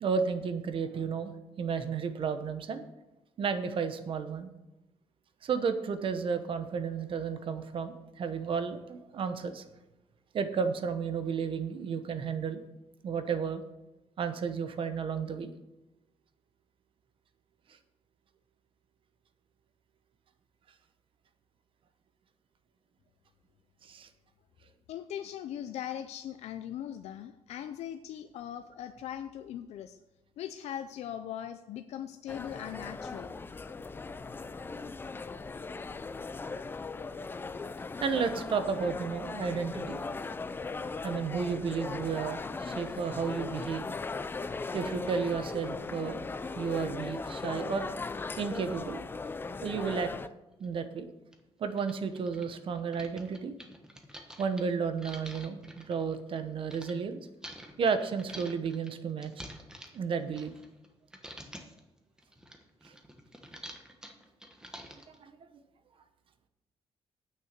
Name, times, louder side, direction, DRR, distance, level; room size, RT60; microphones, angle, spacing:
voice 1, 0.0-2.9 3.4-4.5 5.4-9.6 10.3-12.6 13.0-13.6 14.2-15.5 23.8-24.1 38.0-40.0 41.0-43.8 44.7-46.2 46.6-47.9 48.4-49.0 49.6-50.1 50.6-51.1 51.6-53.6 54.4-57.2 57.8-59.3 59.9-60.5 62.8-62.9 65.2-65.3, right 6 dB, 55° right, 9 dB, 1.0 m, -32 dB
voice 2, 24.9-30.0 30.4-33.3, left 10 dB, 85° left, 9 dB, 0.5 m, -40 dB
sound 1, 32.3-50.3, left 4 dB, 20° left, 0.4 m, -38 dB
sound 2, 50.6-50.7 51.3-51.4 51.7-56.9 57.4-60.9 61.1-61.8 62.2-65.2, equal, 5° right, 1.2 m, -48 dB
9.0 x 6.6 x 6.6 m, 1.0 s
cardioid pair, 135°, 11 cm